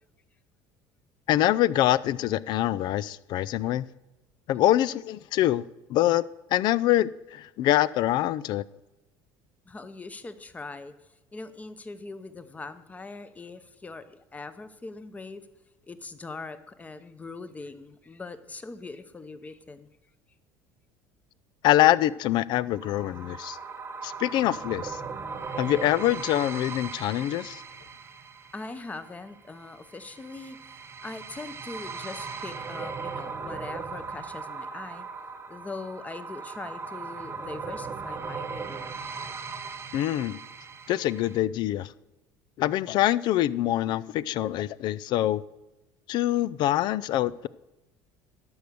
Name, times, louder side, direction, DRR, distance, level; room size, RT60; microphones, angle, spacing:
voice 1, 1.3-3.9 4.5-6.2 6.5-8.6 21.6-23.6 24.0-25.0 25.6-27.6 39.9-40.4 40.9-41.9 42.6-45.4 46.1-47.5, left 14 dB, 55° left, 0.4 m, -25 dB
voice 2, 9.6-15.5 15.9-20.0 28.5-35.2 35.5-39.1, left 3 dB, 15° left, 0.9 m, -41 dB
sound 1, 22.7-41.4, right 5 dB, 30° right, 1.1 m, -38 dB
12.0 x 6.3 x 6.8 m
supercardioid pair, 115°, 9 cm